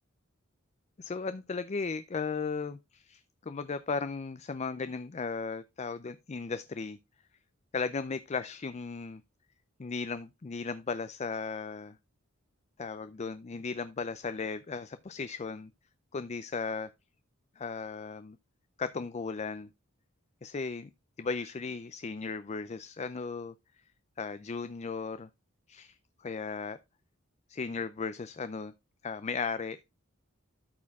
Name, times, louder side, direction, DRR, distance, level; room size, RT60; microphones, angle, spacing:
voice 1, 1.0-7.0 7.7-9.2 9.8-12.0 12.8-15.7 16.1-16.9 17.6-18.4 18.8-19.7 20.4-20.9 21.2-23.5 24.2-25.3 25.7-26.8 27.5-28.7 29.0-29.8, left 4 dB, 30° left, 0.4 m, -36 dB
13.0 x 4.4 x 3.5 m
head